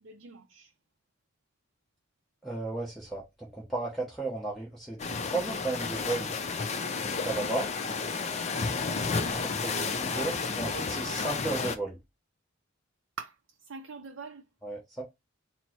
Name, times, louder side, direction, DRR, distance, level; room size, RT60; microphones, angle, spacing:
voice 1, 0.0-0.7 9.7-11.2 13.2-13.4 13.7-14.4, right 5 dB, 70° right, 0.4 m, -44 dB
voice 2, 2.4-6.4 7.0-7.7 9.1-12.0 14.6-15.0, right 2 dB, ahead, 0.9 m, -34 dB
sound 1, 5.0-11.8, left 4 dB, 35° left, 0.5 m, -32 dB
4.3 x 2.0 x 4.4 m
head